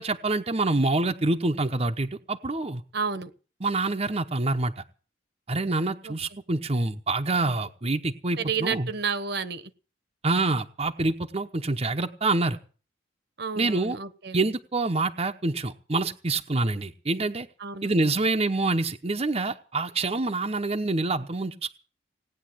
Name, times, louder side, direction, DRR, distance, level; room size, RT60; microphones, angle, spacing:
voice 1, 0.0-2.8 3.6-4.8 5.5-8.9 10.2-12.6 13.6-14.0 14.3-17.5 17.8-21.7, right 2 dB, 35° right, 4 dB, 0.9 m, -26 dB
voice 2, 2.9-3.3 6.0-6.1 8.4-9.7 13.4-14.4 17.6-17.9, right 5 dB, 60° right, 13 dB, 1.2 m, -31 dB
18.0 x 9.4 x 7.8 m, 0.38 s
head